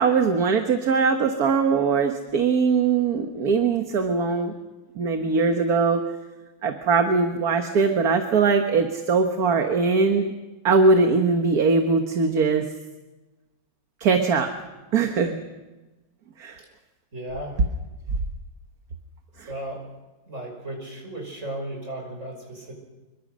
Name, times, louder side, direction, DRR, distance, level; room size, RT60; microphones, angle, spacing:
voice 1, 0.0-4.5 5.0-6.0 6.6-10.3 10.6-12.7 14.0-14.5 14.9-15.4 16.4-16.6, right 4 dB, 55° right, 5 dB, 1.8 m, -21 dB
voice 2, 17.1-17.6 19.5-19.8 20.3-22.7, right 1 dB, 40° right, 2 dB, 6.1 m, -35 dB
25.5 x 23.0 x 6.3 m, 1.1 s
omnidirectional pair, 2.0 m